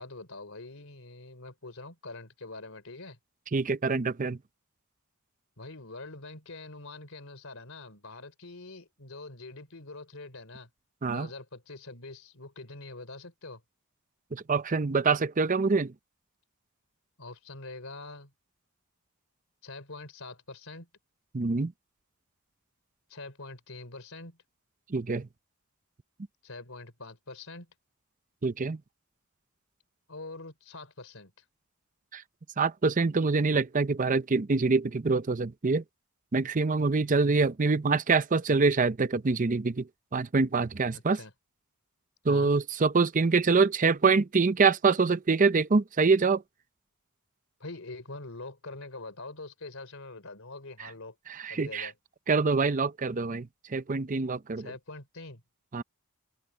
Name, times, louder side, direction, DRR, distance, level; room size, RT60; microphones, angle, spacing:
voice 1, 0.0-3.2 5.6-10.7 11.1-13.6 17.2-18.3 19.6-20.9 23.1-24.4 26.4-27.7 30.1-31.3 40.9-41.3 42.3-42.5 47.6-51.2 51.5-51.9 54.6-55.4, left 2 dB, 65° left, 4.4 m, -44 dB
voice 2, 3.5-4.4 11.0-11.3 14.3-15.9 21.3-21.7 24.9-25.3 28.4-28.8 32.1-32.2 32.6-35.8 36.3-39.9 40.1-41.2 42.3-46.4 50.8-50.9 51.3-51.9 52.3-54.7 55.7-55.8, right 4 dB, 35° right, 0.6 m, -25 dB
open air
head